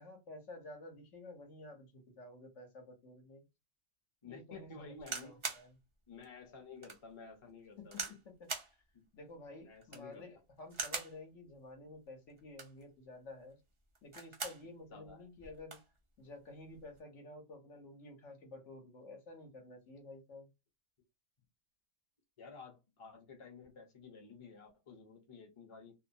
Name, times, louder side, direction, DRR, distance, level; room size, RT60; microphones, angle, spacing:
voice 1, 0.0-3.4 4.2-5.8 7.8-8.5 9.1-13.6 14.0-15.8 16.2-20.5, left 2 dB, 65° left, 1.2 m, -52 dB
voice 2, 4.2-5.4 6.1-8.2 8.9-9.0 9.7-10.3 14.9-15.3 22.4-25.9, left 4 dB, 30° left, 0.8 m, -52 dB
sound 1, 5.0-5.7 6.2-6.3 6.8-7.0 7.9-8.2 8.5-8.7 9.8-10.1 10.7-11.2 12.4-12.8 13.9-14.6 15.1-15.2 15.4-15.9 16.7-17.0, right 4 dB, 35° right, 0.5 m, -41 dB
2.8 x 2.0 x 2.6 m
omnidirectional pair, 1.4 m